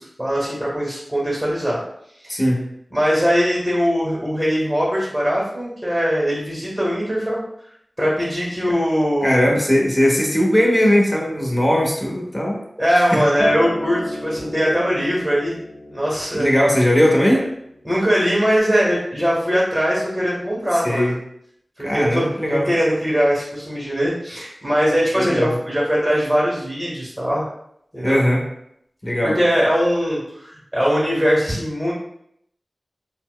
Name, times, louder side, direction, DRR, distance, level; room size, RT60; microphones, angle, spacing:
voice 1, 0.0-1.8 2.2-2.4 2.9-7.4 8.0-9.4 12.8-15.6 15.9-16.5 17.8-21.1 21.8-27.5 27.9-28.2 29.2-31.9, equal, 5° right, -6 dB, 1.1 m, -21 dB
voice 2, 2.3-2.6 8.7-8.8 9.2-12.6 13.1-13.2 16.3-17.4 20.8-21.2 21.8-22.7 25.2-25.6 28.0-28.4 29.0-29.4, equal, 20° left, 0 dB, 0.8 m, -18 dB
Acoustic guitar, 13.4-18.6, left 1 dB, 50° left, 0.8 m, -32 dB
4.1 x 2.1 x 2.2 m, 0.73 s
wide cardioid pair, 50°, 0 cm